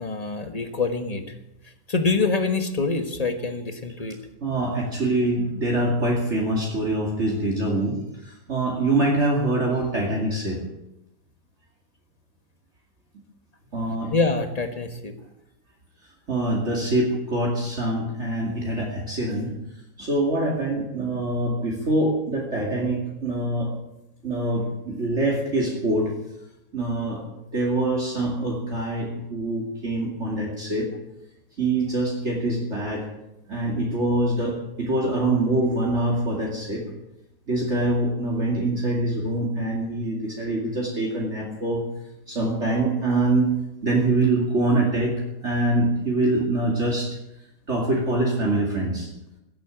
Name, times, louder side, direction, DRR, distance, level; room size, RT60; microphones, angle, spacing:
voice 1, 0.0-1.3 1.6-4.2 14.1-15.1, left 3 dB, 25° left, 7 dB, 1.4 m, -25 dB
voice 2, 4.4-10.6 13.7-14.1 16.3-19.5 20.0-23.7 24.2-26.1 26.7-27.2 27.5-30.9 31.6-33.1 33.5-36.8 37.5-41.8 42.3-43.5 43.8-45.2 45.4-47.1 47.7-49.1, right 2 dB, 45° right, -1 dB, 2.7 m, -24 dB
15.5 x 8.8 x 9.0 m, 0.89 s
omnidirectional pair, 1.8 m